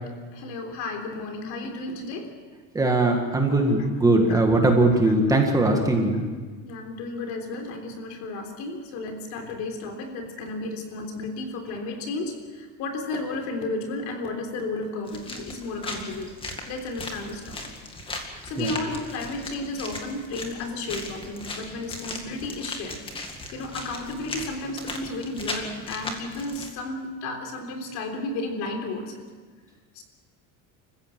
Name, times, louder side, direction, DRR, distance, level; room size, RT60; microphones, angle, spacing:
voice 1, 0.0-2.3 4.3-4.4 5.7-5.9 6.6-16.3 16.7-17.7 18.2-23.0 23.5-29.2 29.9-30.0, left 2 dB, 60° left, 4 dB, 3.7 m, -33 dB
voice 2, 2.7-6.2 18.6-18.7, right 2 dB, 10° right, 2 dB, 1.8 m, -20 dB
sound 1, 15.1-26.7, left 2 dB, 15° left, 2.1 m, -38 dB
26.5 x 15.0 x 7.5 m, 1.4 s
cardioid pair, 180°, 32 cm